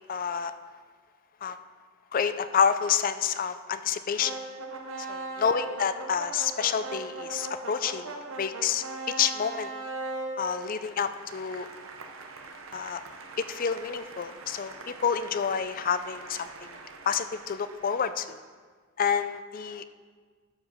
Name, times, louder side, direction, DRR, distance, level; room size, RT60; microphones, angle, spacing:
voice 1, 0.1-0.5 1.4-1.6 2.1-4.4 5.0-9.7 10.4-11.7 12.7-13.0 13.4-16.7 17.1-18.4 19.0-19.8, left 7 dB, 40° left, 12 dB, 0.4 m, -29 dB
sound 1, 4.2-18.4, right 3 dB, 70° right, 0.8 m, -40 dB
13.0 x 4.9 x 5.5 m, 1.6 s
head